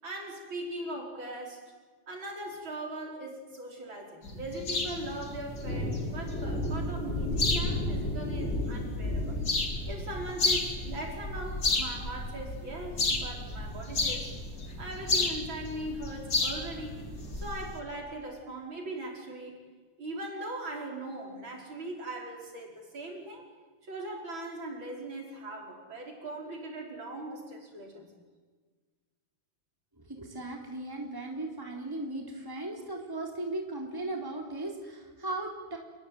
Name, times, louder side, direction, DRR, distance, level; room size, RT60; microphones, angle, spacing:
voice 1, 0.0-1.7 2.1-9.4 9.9-14.4 14.8-19.6 20.0-23.5 23.8-28.1, right 1 dB, 60° right, 1 dB, 5.8 m, -40 dB
sound 1, 4.2-17.8, left 3 dB, 45° left, 3.5 m, -33 dB
Thunder, 4.8-17.5, left 1 dB, 30° left, 4.2 m, -36 dB
voice 2, 30.0-35.8, right 2 dB, 10° right, 1 dB, 3.6 m, -37 dB
28.5 x 21.0 x 9.5 m, 1.4 s
omnidirectional pair, 2.4 m